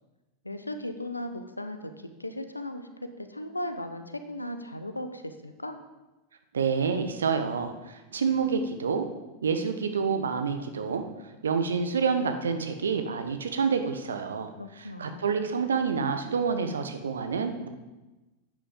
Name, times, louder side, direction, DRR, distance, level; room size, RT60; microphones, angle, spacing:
voice 1, 0.4-5.8 14.6-15.3, left 1 dB, 85° left, 9 dB, 1.0 m, -37 dB
voice 2, 6.5-9.1 9.4-11.0 11.4-17.7, right 5 dB, 70° right, 7 dB, 1.1 m, -28 dB
10.5 x 8.9 x 5.3 m, 1.1 s
figure-of-eight pair, 90°, 0 cm